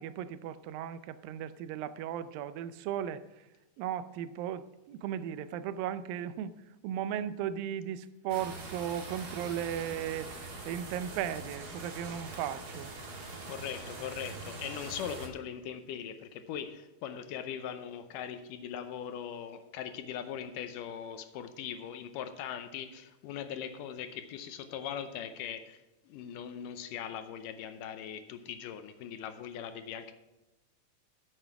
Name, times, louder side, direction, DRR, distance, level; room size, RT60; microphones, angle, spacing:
voice 1, 0.0-3.5 3.8-6.5 6.8-12.9, right 10 dB, 85° right, 13 dB, 2.4 m, -36 dB
sound 1, 8.3-15.3, right 3 dB, 40° right, 1.5 m, -43 dB
voice 2, 13.5-30.1, left 8 dB, 75° left, 9 dB, 2.2 m, -40 dB
9.7 x 7.7 x 5.8 m, 1.0 s
omnidirectional pair, 4.0 m